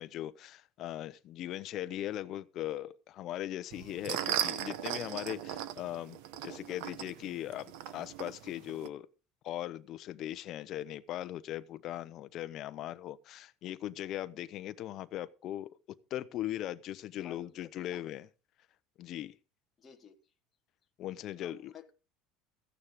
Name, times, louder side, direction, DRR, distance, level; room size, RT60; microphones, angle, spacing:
voice 1, 0.0-9.1 9.4-15.7 16.1-18.3 19.0-19.3 21.0-21.7, left 13 dB, 35° left, 0.8 m, -39 dB
sound 1, 3.7-8.9, right 11 dB, 65° right, 1.0 m, -38 dB
voice 2, 6.3-6.8 17.2-18.0 19.8-20.3 21.4-21.9, left 8 dB, 20° left, 1.4 m, -55 dB
14.5 x 9.5 x 5.1 m
cardioid pair, 180°, 0 cm